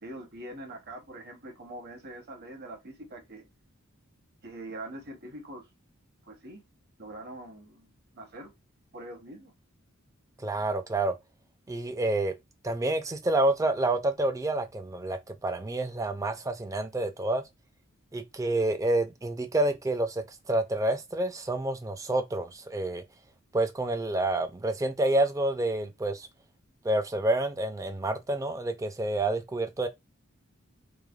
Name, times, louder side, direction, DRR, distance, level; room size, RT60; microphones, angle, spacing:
voice 1, 0.0-3.5 4.4-5.6 6.3-6.6 7.0-7.9 8.1-8.5 8.9-9.5, right 1 dB, 50° right, 0.9 m, -43 dB
voice 2, 10.4-11.2 11.7-12.3 12.6-17.4 18.1-23.0 23.5-26.3 26.8-29.9, right 2 dB, 15° right, 0.3 m, -28 dB
3.2 x 2.0 x 2.3 m
head